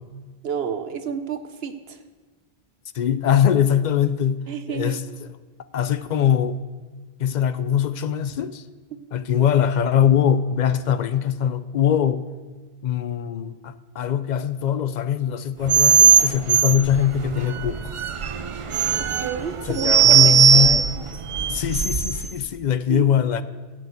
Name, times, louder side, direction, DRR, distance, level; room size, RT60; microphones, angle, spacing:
voice 1, 0.4-2.0 4.5-5.0 19.2-21.0 22.9-23.1, right 7 dB, 70° right, 1.1 m, -30 dB
voice 2, 2.9-4.4 4.7-5.3 5.7-6.6 7.2-8.6 9.1-12.2 12.8-18.0 19.7-20.9 21.5-23.4, left 9 dB, 55° left, 0.6 m, -22 dB
sound 1, 15.7-22.3, right 7 dB, 45° right, 0.4 m, -18 dB
12.0 x 6.6 x 8.2 m
omnidirectional pair, 1.1 m